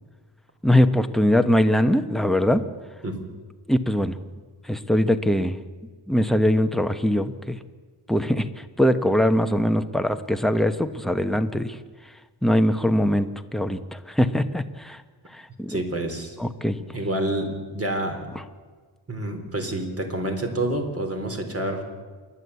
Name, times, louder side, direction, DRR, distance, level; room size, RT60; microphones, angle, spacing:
voice 1, 0.6-2.6 3.7-4.2 4.7-5.5 6.1-7.6 8.1-8.5 8.8-11.8 12.4-15.0 15.3-15.8 16.4-16.8, left 1 dB, ahead, 8 dB, 1.1 m, -22 dB
voice 2, 15.7-16.4 16.9-18.3 19.1-21.8, right 1 dB, 30° right, 4 dB, 3.7 m, -28 dB
28.0 x 11.5 x 8.2 m, 1.4 s
cardioid pair, 95°, 44 cm